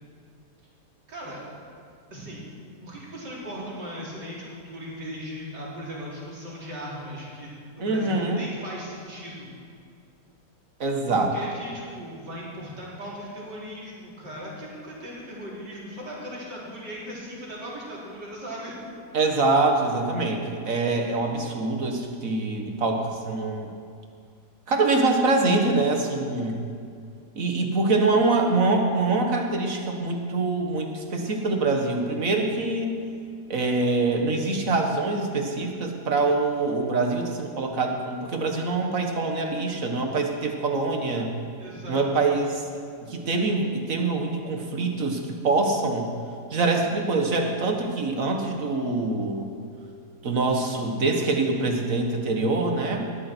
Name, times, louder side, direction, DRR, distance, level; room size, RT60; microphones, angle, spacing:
voice 1, 1.1-1.5 2.1-2.4 2.8-7.5 7.8-9.5 11.1-18.8 41.6-42.4, equal, 90° right, -6 dB, 4.5 m, -38 dB
voice 2, 7.8-8.4 10.8-11.3 19.1-23.7 24.7-26.6 27.4-32.9 33.5-41.3 41.9-42.7 43.0-46.1 46.5-49.5 50.2-53.1, right 3 dB, 50° right, 3 dB, 1.9 m, -24 dB
19.5 x 13.5 x 4.6 m, 2.3 s
omnidirectional pair, 1.8 m